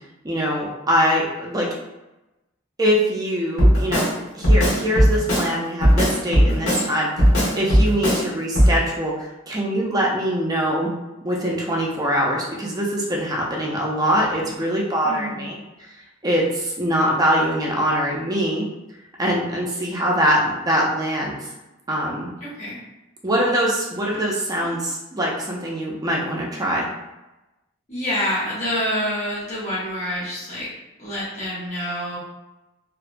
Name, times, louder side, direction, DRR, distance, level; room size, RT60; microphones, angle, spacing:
voice 1, 0.2-1.7 2.8-4.1 4.3-7.1 7.6-10.9 11.2-15.6 16.2-18.7 19.2-21.5 21.9-22.3 23.2-26.9, equal, 20° right, -3 dB, 0.4 m, -23 dB
Drum kit, 3.6-4.1 4.4-5.5 5.8-6.9 7.2-8.2 8.5-8.7, equal, 75° left, 1.1 m, -16 dB
voice 2, 6.5-6.8 15.0-15.5 22.4-22.8 24.1-24.8 27.9-30.7 31.0-32.2, equal, 35° left, -9 dB, 0.8 m, -28 dB
2.8 x 2.2 x 2.5 m, 0.99 s
head